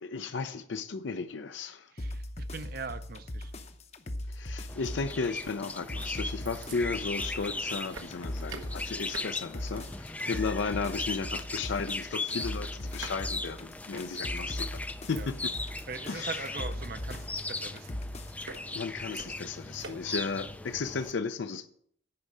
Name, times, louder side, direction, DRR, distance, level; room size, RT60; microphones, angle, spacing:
voice 1, 0.0-1.9 4.3-15.5 16.1-16.4 18.7-21.7, left 4 dB, 70° left, 0.5 m, -35 dB
voice 2, 1.9-3.5 10.2-10.4 15.2-15.3 15.9-18.0, right 4 dB, 50° right, 0.6 m, -41 dB
sound 1, 2.0-18.6, left 1 dB, 35° left, 0.7 m, -40 dB
sound 2, 4.7-21.1, left 2 dB, 10° left, 0.3 m, -38 dB
sound 3, 5.3-21.1, right 4 dB, 80° right, 1.2 m, -51 dB
9.8 x 5.4 x 7.4 m
head